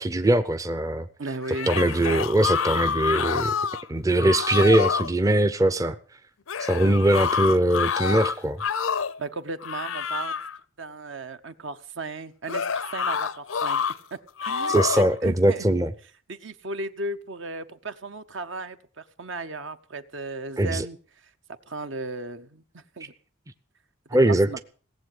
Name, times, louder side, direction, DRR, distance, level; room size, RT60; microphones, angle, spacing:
voice 1, 0.0-1.1 1.7-3.6 3.9-6.0 6.6-8.6 14.7-15.9 20.6-20.9 24.1-24.6, right 1 dB, 15° right, 11 dB, 0.6 m, -21 dB
voice 2, 1.2-1.7 9.2-10.4 10.8-13.8 14.4-15.6 16.3-21.0 21.7-23.1 24.3-24.6, right 2 dB, 65° right, 10 dB, 1.0 m, -35 dB
sound 1, 1.4-3.8 4.2-5.1 6.5-9.2 9.6-10.6 12.5-14.0 14.4-15.1, left 6 dB, 85° left, 0.7 m, -27 dB
17.5 x 7.8 x 7.9 m, 0.43 s
head